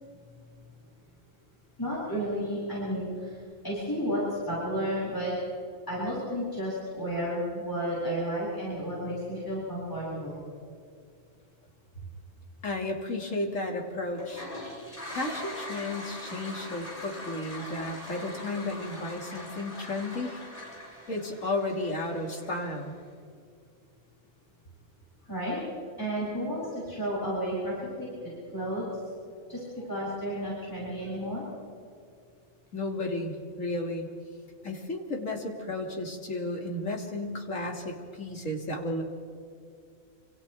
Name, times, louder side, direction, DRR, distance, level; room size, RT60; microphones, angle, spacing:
voice 1, 1.8-5.3 5.9-10.4 25.2-25.6 26.0-28.9 29.5-31.4, equal, 15° left, -8 dB, 7.6 m, -32 dB
voice 2, 12.6-14.5 15.1-20.4 21.1-23.0 32.7-34.1 34.6-39.0, left 2 dB, 65° left, 1 dB, 2.7 m, -33 dB
Toilet flush, 14.1-23.0, left 1 dB, 40° left, 7.7 m, -42 dB
28.5 x 26.0 x 3.5 m, 2.3 s
omnidirectional pair, 1.5 m